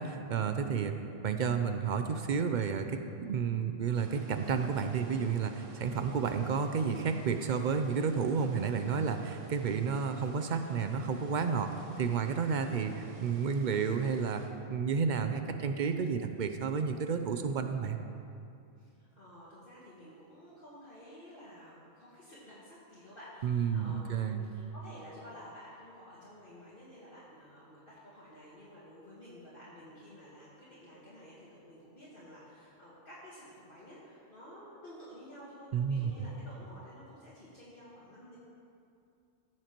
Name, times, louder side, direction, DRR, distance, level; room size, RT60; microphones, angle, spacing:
voice 1, 0.0-11.7 12.0-14.4 14.7-18.0 23.4-24.4 35.7-36.3, right 6 dB, 60° right, 7 dB, 0.5 m, -31 dB
sound 1, 3.9-14.5, right 2 dB, 90° right, 1.4 m, -55 dB
voice 2, 18.8-38.4, equal, 45° left, -9 dB, 1.7 m, -52 dB
15.0 x 7.5 x 3.0 m, 2.5 s
omnidirectional pair, 1.3 m